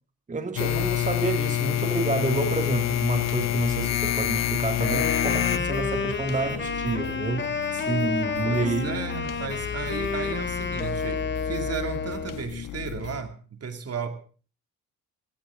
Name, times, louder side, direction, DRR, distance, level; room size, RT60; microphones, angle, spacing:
voice 1, 0.3-9.0, right 3 dB, 25° right, 5 dB, 2.1 m, -29 dB
sound 1, 0.6-13.2, left 9 dB, 85° left, 1.4 m, -37 dB
sound 2, 0.6-5.6, left 12 dB, 60° left, 0.7 m, -26 dB
Wind instrument woodwind instrument, 4.7-12.5, left 5 dB, 35° left, 2.3 m, -30 dB
voice 2, 8.4-14.1, right 6 dB, 50° right, 6 dB, 2.7 m, -34 dB
18.0 x 17.5 x 3.8 m, 0.39 s
cardioid pair, 100°, 31 cm